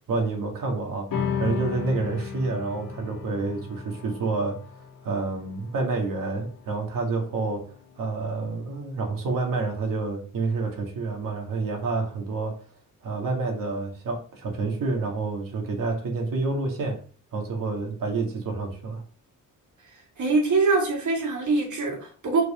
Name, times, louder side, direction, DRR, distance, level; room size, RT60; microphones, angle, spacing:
voice 1, 0.1-4.6 5.0-7.7 8.0-12.6 13.0-17.0 17.3-19.0, right 3 dB, 80° right, 2.4 m, -28 dB
sound 1, 1.1-7.8, left 7 dB, 90° left, 1.7 m, -35 dB
voice 2, 20.2-22.4, right 3 dB, 65° right, 2.9 m, -23 dB
6.7 x 4.7 x 5.7 m
wide cardioid pair, 165°, 32 cm